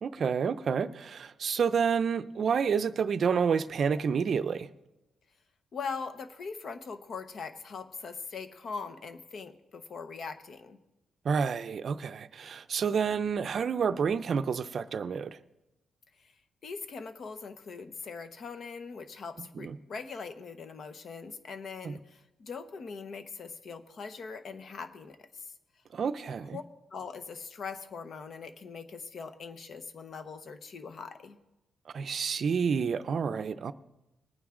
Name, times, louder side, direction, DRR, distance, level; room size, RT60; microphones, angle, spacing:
voice 1, 0.0-4.7 11.2-15.4 19.6-19.8 21.8-21.9 25.9-26.6 31.9-33.7, right 6 dB, 55° right, 0.5 m, -29 dB
voice 2, 5.7-10.8 16.2-16.3 16.6-25.5 26.4-26.6 26.9-31.4, left 5 dB, 55° left, 1.0 m, -41 dB
20.5 x 9.2 x 3.8 m
cardioid pair, 105°, 0 cm